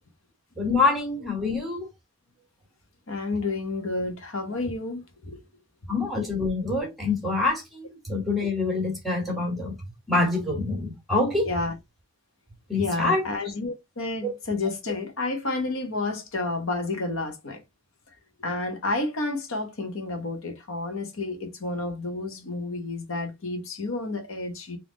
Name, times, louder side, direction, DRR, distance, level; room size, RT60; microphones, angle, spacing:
voice 1, 0.6-1.9 5.9-9.7 10.1-11.5 12.7-13.2 14.2-14.3, left 3 dB, ahead, 1.4 m, -26 dB
voice 2, 3.1-5.4 11.4-11.8 12.8-17.6 18.4-24.8, left 3 dB, 80° left, 1.1 m, -30 dB
3.6 x 2.8 x 3.7 m
head